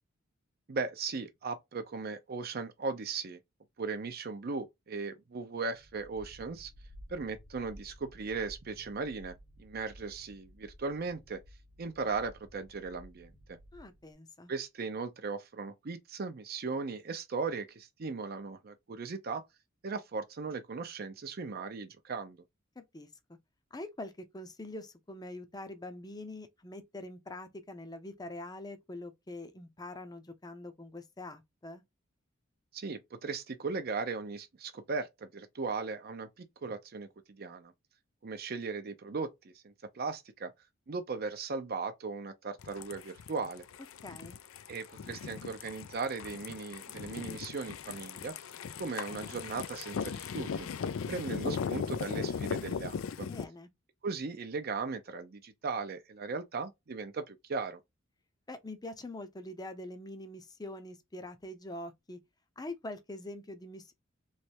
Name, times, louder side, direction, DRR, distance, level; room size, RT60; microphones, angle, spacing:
voice 1, 0.7-3.4 3.8-6.7 7.1-11.4 11.8-13.6 14.5-19.4 19.8-22.4 32.7-37.7 38.2-40.5 40.9-43.6 44.7-48.5 48.8-50.7 51.1-53.3 54.0-57.8, right 4 dB, 50° right, 0.5 m, -37 dB
sound 1, 5.7-14.1, equal, 55° left, 0.9 m, -54 dB
voice 2, 13.7-14.5 22.8-23.1 23.7-31.8 44.0-44.4 53.2-53.7 58.5-62.2 62.6-63.9, left 1 dB, 20° left, 0.6 m, -44 dB
sound 2, 42.6-53.4, left 6 dB, 80° left, 0.4 m, -38 dB
3.2 x 3.1 x 2.8 m
head